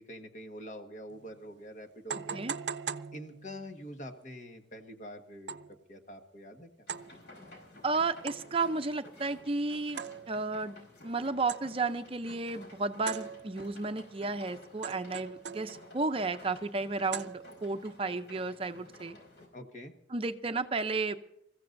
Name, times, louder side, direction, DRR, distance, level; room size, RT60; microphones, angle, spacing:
voice 1, 0.0-2.4 3.1-5.6 5.9-6.7 19.5-19.9, equal, 45° left, 5 dB, 1.5 m, -45 dB
sound 1, 1.1-1.2 2.1-3.8 5.5-5.8 6.9-7.2 8.3-8.7 10.0-10.6 11.5-11.9 13.1-13.8 14.8-16.0 17.1-17.8, right 7 dB, 90° right, 0.5 m, -41 dB
voice 2, 2.1-2.5 7.8-10.0 10.3-19.2 20.1-21.2, right 3 dB, 30° right, 9 dB, 0.6 m, -33 dB
sound 2, 6.9-19.5, left 2 dB, 90° left, 4.9 m, -53 dB
28.5 x 15.0 x 2.6 m, 0.79 s
head